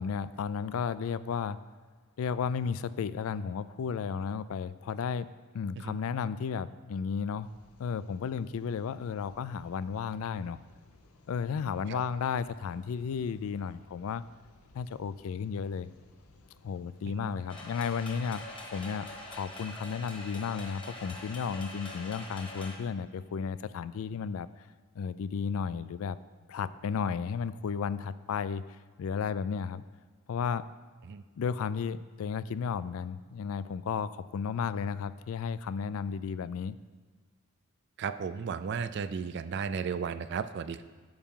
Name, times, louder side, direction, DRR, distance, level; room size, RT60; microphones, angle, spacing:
voice 1, 0.0-1.6 2.2-5.3 5.5-7.5 7.8-10.6 11.3-14.2 14.7-15.9 16.6-18.4 18.7-24.5 25.0-26.2 26.5-28.6 29.0-29.8 30.3-30.6 31.4-36.8, left 6 dB, 70° left, 16 dB, 0.3 m, -33 dB
sound 1, 7.4-19.5, left 2 dB, 85° left, 0.8 m, -60 dB
sound 2, 17.5-22.7, left 2 dB, 25° left, 1.2 m, -44 dB
voice 2, 38.0-40.8, right 6 dB, 50° right, 12 dB, 0.3 m, -34 dB
8.8 x 7.0 x 3.7 m, 1.5 s
head